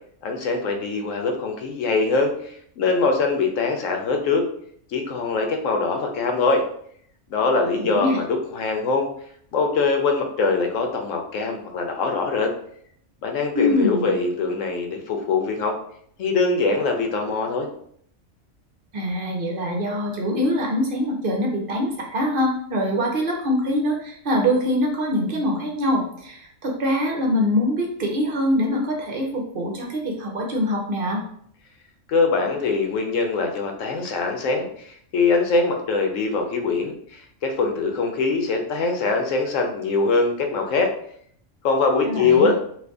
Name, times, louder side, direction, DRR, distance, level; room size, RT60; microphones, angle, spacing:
voice 1, 0.2-4.4 4.9-6.6 7.3-9.1 9.5-12.5 13.2-15.7 16.2-17.7 32.1-40.9 41.6-42.6, left 4 dB, 90° left, 3 dB, 1.0 m, -23 dB
voice 2, 7.8-8.2 13.5-14.1 18.9-31.2 42.0-42.5, left 1 dB, 55° right, 0 dB, 0.7 m, -24 dB
2.6 x 2.5 x 3.4 m, 0.64 s
omnidirectional pair, 1.3 m